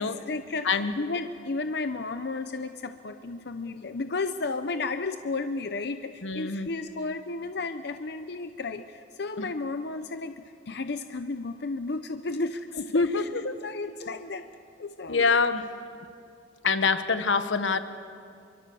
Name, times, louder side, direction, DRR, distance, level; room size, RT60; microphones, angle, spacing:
voice 1, 0.0-13.3 13.6-14.4 14.8-15.4, left 3 dB, 60° left, 9 dB, 0.7 m, -33 dB
voice 2, 6.2-6.7 9.4-9.5 12.9-13.6 15.1-15.7 16.6-17.8, left 4 dB, 90° left, 9 dB, 1.3 m, -25 dB
26.5 x 24.0 x 7.0 m, 2.4 s
head